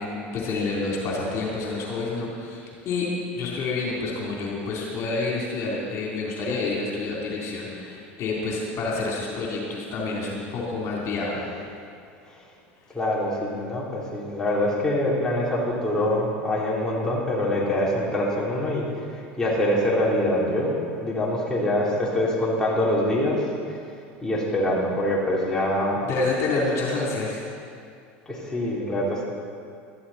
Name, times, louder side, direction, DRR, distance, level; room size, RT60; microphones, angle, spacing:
voice 1, 0.0-3.1 3.4-11.5 26.1-27.4, left 3 dB, 50° left, -4 dB, 3.6 m, -28 dB
voice 2, 12.9-20.8 21.0-23.8 24.2-26.0 28.3-29.2, left 1 dB, 10° left, -6 dB, 3.9 m, -24 dB
13.5 x 13.5 x 4.4 m, 2.3 s
hypercardioid pair, 90°, 6 cm